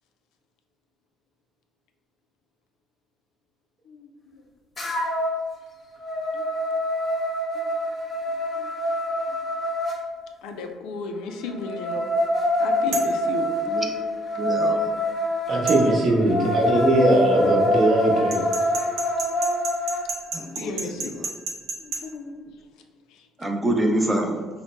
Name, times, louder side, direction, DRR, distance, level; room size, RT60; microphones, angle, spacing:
voice 1, 3.9-4.4 4.8-4.9 6.3-6.4 7.5-7.7 8.6-8.7 9.3-9.4 10.4-12.1 12.6-13.5 16.2-16.3 20.6-21.1 21.8-22.4 23.1-23.3, left 4 dB, 85° left, 4 dB, 0.4 m, -35 dB
sound 1, 4.8-5.4 5.8-10.0 11.4-20.0, left 1 dB, 25° left, 0.8 m, -25 dB
sound 2, 12.9-13.2 15.7-15.8 18.3-22.0, right 4 dB, 75° right, 0.7 m, -31 dB
voice 2, 14.4-14.9 20.3-20.7 21.2-21.3 23.4-24.4, right 1 dB, 15° right, 2 dB, 0.5 m, -25 dB
voice 3, 15.5-18.4, right 1 dB, 40° right, -2 dB, 0.8 m, -20 dB
3.2 x 2.1 x 4.2 m, 1.4 s
cardioid pair, 125°, 0 cm